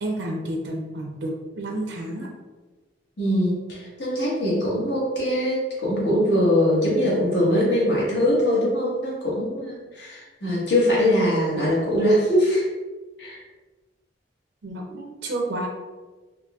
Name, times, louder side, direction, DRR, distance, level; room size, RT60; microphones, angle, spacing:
voice 1, 0.0-2.3 14.6-15.7, right 1 dB, 70° right, 0 dB, 0.5 m, -30 dB
voice 2, 3.2-12.7 13.2-13.4, equal, 65° left, -6 dB, 1.2 m, -22 dB
4.0 x 2.6 x 2.3 m, 1.3 s
head